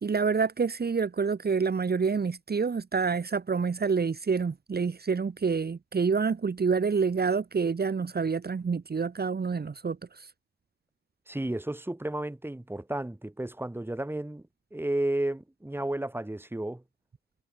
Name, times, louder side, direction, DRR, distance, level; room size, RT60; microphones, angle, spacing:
voice 1, 0.0-10.3, right 5 dB, 30° right, 2.4 m, -27 dB
voice 2, 11.3-14.4 14.7-16.8, right 1 dB, 5° right, 3.4 m, -32 dB
cardioid pair, 90°, 30 cm